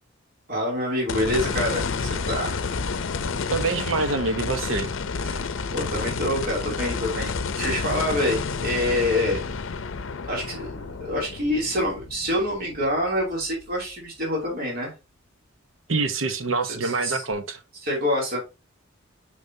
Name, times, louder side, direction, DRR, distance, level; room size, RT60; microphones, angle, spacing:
voice 1, 0.5-2.6 5.2-9.4 10.3-14.9 16.6-17.2 17.8-18.4, left 1 dB, 50° right, 2.8 m, -26 dB
sound 1, 1.1-13.4 13.9-14.0 17.3-17.4, left 4 dB, 70° left, 0.6 m, -30 dB
voice 2, 3.5-4.9 15.9-17.6, right 3 dB, 75° right, 0.9 m, -25 dB
6.7 x 5.2 x 2.7 m
head